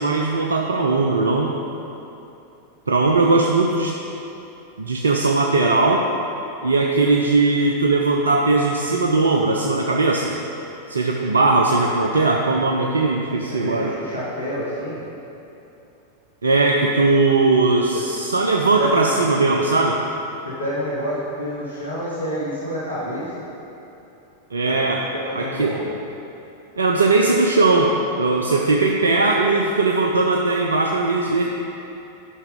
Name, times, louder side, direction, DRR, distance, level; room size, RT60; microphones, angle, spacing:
voice 1, 0.0-1.5 2.9-3.9 4.8-6.1 6.6-10.3 10.9-13.9 16.4-20.0 24.5-25.0 25.3-25.8 26.8-31.4, right 3 dB, 75° right, 1 dB, 0.5 m, -19 dB
voice 2, 13.5-15.0 17.9-18.0 18.8-19.3 20.4-23.4 24.6-24.8 25.1-25.9, equal, 85° left, -9 dB, 1.4 m, -28 dB
11.0 x 5.8 x 3.8 m, 2.9 s
figure-of-eight pair, 90°, 0 cm